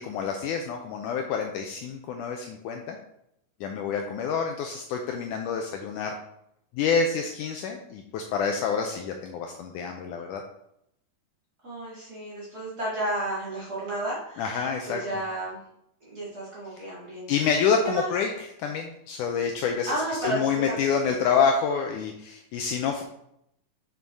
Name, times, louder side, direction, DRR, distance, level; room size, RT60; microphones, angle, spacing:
voice 1, 0.0-3.0 3.6-6.1 6.7-10.4 14.4-15.0 17.3-23.0, left 6 dB, 80° left, 3 dB, 1.9 m, -27 dB
voice 2, 11.6-15.6 16.0-17.3 17.8-18.1 19.9-20.9, right 1 dB, 30° right, -7 dB, 2.2 m, -32 dB
7.2 x 6.4 x 3.5 m, 0.77 s
omnidirectional pair, 4.0 m